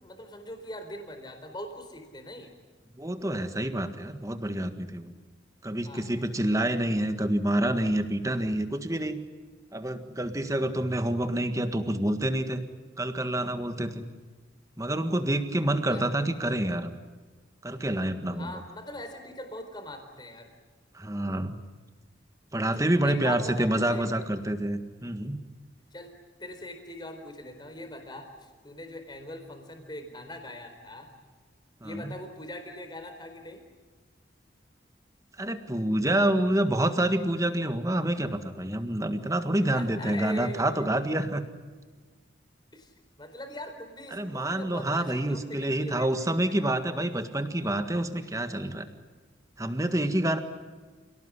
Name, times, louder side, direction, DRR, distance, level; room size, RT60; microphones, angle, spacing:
voice 1, 0.0-2.5 5.8-6.1 15.9-16.1 18.4-20.5 23.0-24.0 25.9-26.1 26.4-31.1 31.8-33.6 39.7-40.9 42.7-46.1, left 1 dB, 25° left, 5 dB, 4.2 m, -41 dB
voice 2, 3.0-5.1 5.6-9.2 9.7-12.6 13.0-14.1 14.8-16.9 17.6-18.5 20.9-21.6 22.5-25.4 31.8-32.1 35.4-41.4 44.1-48.9 49.6-50.4, right 1 dB, 15° right, 8 dB, 1.7 m, -27 dB
28.5 x 18.0 x 9.8 m, 1.4 s
head